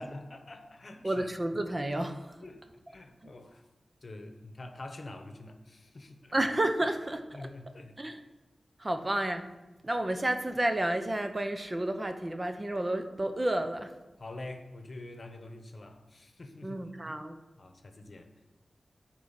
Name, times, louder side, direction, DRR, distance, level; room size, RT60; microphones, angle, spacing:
voice 1, 0.0-1.3 2.4-3.7 4.0-6.3 7.3-8.0 14.2-16.8 17.6-18.3, left 2 dB, 55° left, 6 dB, 1.0 m, -45 dB
voice 2, 1.0-2.4 3.2-3.3 6.3-7.5 8.0-8.2 8.8-9.4 9.8-13.9 16.6-17.4, right 1 dB, 30° right, 7 dB, 0.8 m, -31 dB
9.4 x 4.5 x 7.5 m, 1.1 s
wide cardioid pair, 65°, 0 cm